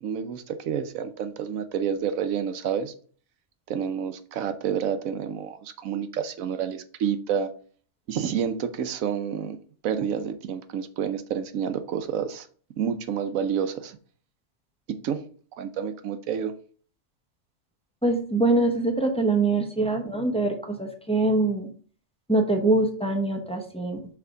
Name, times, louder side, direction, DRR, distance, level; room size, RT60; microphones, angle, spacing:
voice 1, 0.0-2.9 3.7-7.5 8.1-9.6 9.8-12.5 12.8-14.0 14.9-15.3 15.6-16.5, right 8 dB, 80° right, 1.1 m, -29 dB
voice 2, 18.0-21.7 22.3-24.0, right 2 dB, 5° left, 0.8 m, -24 dB
5.8 x 3.5 x 5.0 m
omnidirectional pair, 1.4 m